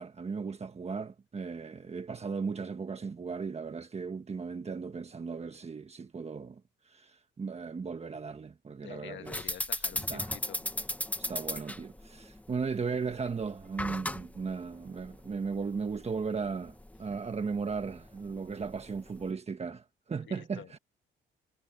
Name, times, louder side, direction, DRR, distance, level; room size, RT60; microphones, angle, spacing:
voice 1, 0.0-6.6 6.8-9.6 9.9-10.3 11.3-20.8, right 5 dB, 30° right, 1.4 m, -36 dB
voice 2, 8.8-10.7 20.3-20.8, left 11 dB, 70° left, 1.7 m, -48 dB
sound 1, 9.3-19.3, left 1 dB, 5° left, 1.3 m, -38 dB
cardioid pair, 90°, 20 cm